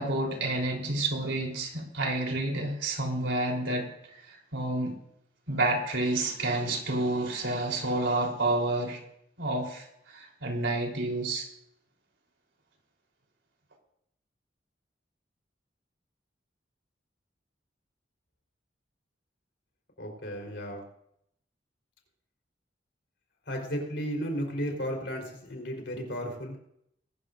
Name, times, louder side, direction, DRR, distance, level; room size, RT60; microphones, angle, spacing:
voice 1, 0.0-3.9 4.1-4.9 5.5-9.0 9.4-11.5, right 2 dB, 85° right, 0 dB, 3.8 m, -29 dB
voice 2, 20.0-20.8 23.5-26.6, equal, 70° left, 1 dB, 4.0 m, -34 dB
22.0 x 13.0 x 2.6 m, 0.75 s
head